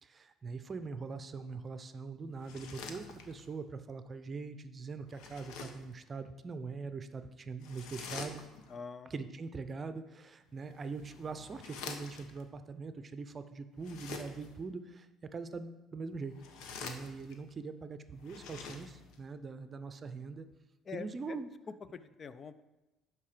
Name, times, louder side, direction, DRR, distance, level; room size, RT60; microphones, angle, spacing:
voice 1, 0.0-8.4 9.1-16.3 16.8-20.5 20.9-21.5, right 4 dB, 35° right, 10 dB, 0.6 m, -42 dB
sound 1, 2.3-3.6 5.1-5.9 7.6-8.8 10.6-12.4 13.8-14.6 16.2-17.5 18.1-19.2, left 5 dB, 75° left, 1.1 m, -47 dB
voice 2, 8.7-9.1 20.8-21.4 21.9-22.6, left 6 dB, 40° left, 13 dB, 0.5 m, -45 dB
11.5 x 4.6 x 5.0 m, 1.1 s
supercardioid pair, 95°, 0 cm